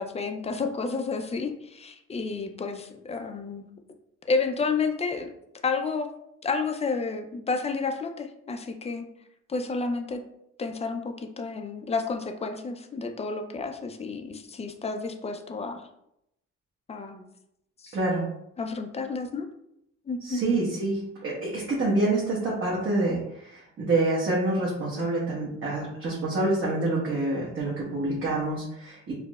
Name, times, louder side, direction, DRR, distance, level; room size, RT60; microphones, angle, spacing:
voice 1, 0.0-3.7 4.3-5.3 5.6-6.1 6.4-9.1 9.5-10.2 10.6-15.8 16.9-17.2 17.8-18.0 18.6-19.5 20.1-20.4, left 4 dB, 20° left, 5 dB, 0.4 m, -30 dB
voice 2, 17.9-18.3 20.2-29.1, right 2 dB, 45° right, -5 dB, 0.9 m, -27 dB
4.6 x 2.0 x 2.3 m, 0.80 s
cardioid pair, 90°, 30 cm